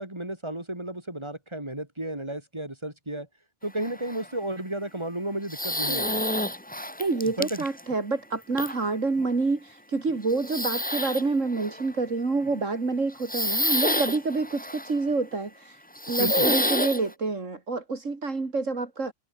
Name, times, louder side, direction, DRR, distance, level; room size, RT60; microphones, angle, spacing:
voice 1, 0.0-3.3 3.6-6.2 7.4-7.7 16.2-16.5, right 1 dB, 20° right, 5.2 m, -33 dB
sound 1, 3.8-4.3 5.5-7.8 8.6-8.8 9.2-9.3 10.3-11.2 11.5-11.9 12.5-12.6 13.2-15.0 16.0-17.0, left 1 dB, 5° left, 1.8 m, -28 dB
voice 2, 7.0-15.7 16.1-19.1, right 3 dB, 70° right, 3.3 m, -27 dB
omnidirectional pair, 1.4 m